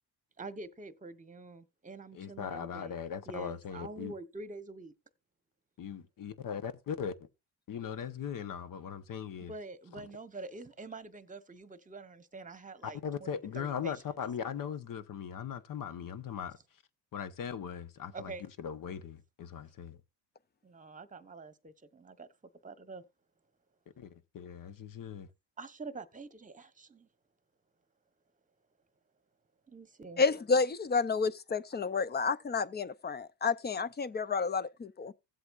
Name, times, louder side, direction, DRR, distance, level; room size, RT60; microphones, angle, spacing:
voice 1, 0.4-3.0 3.3-4.9 9.4-14.0 18.1-18.5 20.6-22.3 22.6-23.0 25.6-27.1 29.7-30.2, right 3 dB, 20° right, 1.1 m, -46 dB
voice 2, 2.1-4.1 5.8-7.1 7.7-9.5 12.8-16.6 17.1-18.3 18.6-20.0 24.0-25.3, left 7 dB, 50° left, 1.1 m, -39 dB
voice 3, 30.2-35.1, left 4 dB, 25° left, 0.6 m, -30 dB
16.0 x 7.9 x 2.5 m
cardioid pair, 100°, 41 cm